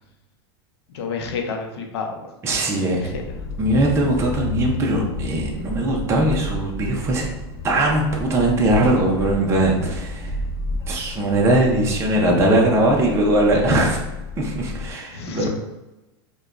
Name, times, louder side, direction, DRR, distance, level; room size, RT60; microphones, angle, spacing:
voice 1, 0.9-2.1 3.0-3.2 15.1-15.5, left 5 dB, 80° left, 3 dB, 0.7 m, -29 dB
voice 2, 2.4-3.0 3.6-7.3 7.6-10.3 10.9-14.1 14.4-15.5, right 1 dB, 20° right, -1 dB, 0.6 m, -20 dB
sound 1, 3.0-14.9, left 2 dB, 25° left, 0.4 m, -31 dB
4.9 x 2.3 x 2.5 m, 1.0 s
supercardioid pair, 145°, 13 cm